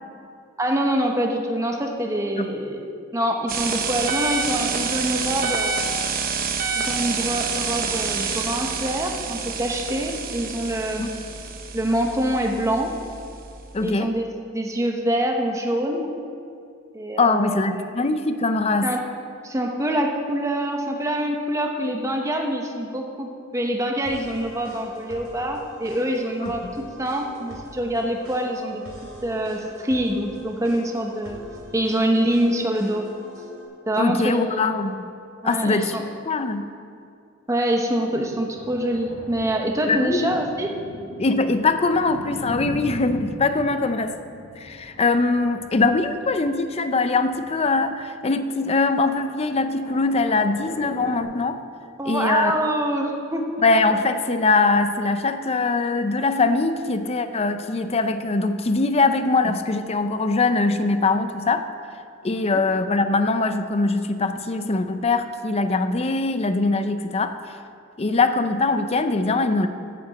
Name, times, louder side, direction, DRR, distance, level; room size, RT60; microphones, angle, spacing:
voice 1, 0.6-2.9 3.1-5.8 6.7-11.2 11.7-12.9 13.8-14.3 14.5-16.1 16.9-17.9 18.8-19.0 19.4-28.8 29.2-31.4 31.7-33.1 33.9-34.6 35.4-36.1 37.5-40.7 52.0-53.6 53.9-54.0 62.4-62.6, right 1 dB, 15° right, 2 dB, 0.8 m, -25 dB
sound 1, 3.5-13.9, right 5 dB, 45° right, 0.8 m, -28 dB
voice 2, 13.7-14.1 17.2-18.9 26.4-26.7 34.0-35.1 35.4-35.9 36.2-36.7 39.9-40.3 41.2-44.2 44.6-51.6 52.1-52.5 53.6-61.7 62.2-67.3 68.0-69.7, left 3 dB, 30° left, 9 dB, 0.5 m, -22 dB
sound 2, 24.1-33.7, right 1 dB, 90° right, 2.6 m, -43 dB
sound 3, 38.2-46.4 47.2-48.7 49.0-51.2, equal, 65° left, 1.6 m, -39 dB
8.3 x 7.8 x 7.6 m, 2.4 s
head